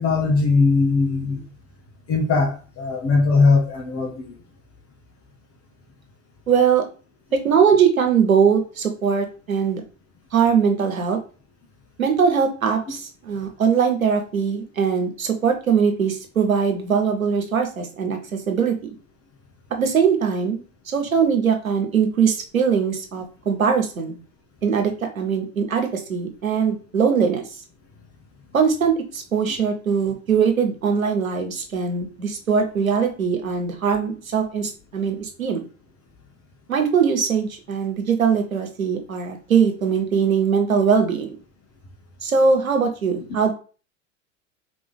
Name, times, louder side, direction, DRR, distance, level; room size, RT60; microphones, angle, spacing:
voice 1, 0.0-1.5 2.1-4.4 29.5-29.6, left 4 dB, 35° left, 1 dB, 1.7 m, -20 dB
voice 2, 6.5-6.8 7.3-9.8 10.3-11.2 12.0-18.8 19.8-24.1 24.6-27.4 28.5-35.6 36.7-41.4 42.2-43.5, right 6 dB, 85° right, 4 dB, 0.9 m, -21 dB
3.7 x 3.5 x 3.5 m, 0.37 s
figure-of-eight pair, 80°, 40 cm